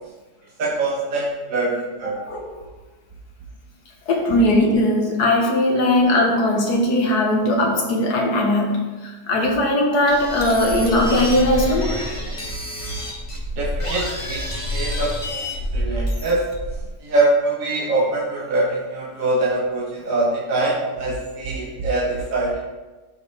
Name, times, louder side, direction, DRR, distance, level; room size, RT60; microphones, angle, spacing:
voice 1, 0.6-2.2 13.5-16.5 17.0-22.6, right 2 dB, 60° right, -5 dB, 1.7 m, -23 dB
voice 2, 4.1-12.0, left 1 dB, 80° left, 0 dB, 1.7 m, -19 dB
sound 1, 10.1-16.9, equal, 20° left, 1.1 m, -28 dB
12.5 x 4.9 x 3.3 m, 1.2 s
omnidirectional pair, 1.7 m